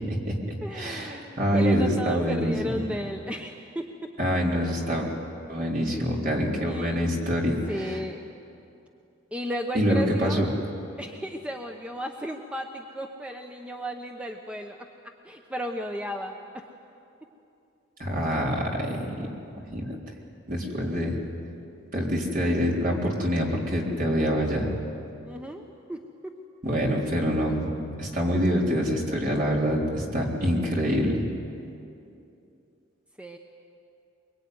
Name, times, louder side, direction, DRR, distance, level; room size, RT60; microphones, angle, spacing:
voice 1, 0.1-2.8 4.2-5.1 5.5-8.0 9.7-10.5 18.0-19.1 19.7-20.0 20.5-21.2 21.9-24.8 26.6-27.7 28.0-31.2, equal, 45° right, -2 dB, 4.0 m, -26 dB
voice 2, 0.6-4.1 6.6-7.0 7.7-8.2 9.3-10.4 11.0-14.8 15.2-16.3 25.3-25.6 25.9-26.3 33.2-33.4, equal, 5° right, 3 dB, 0.9 m, -34 dB
23.5 x 23.0 x 9.5 m, 2.7 s
head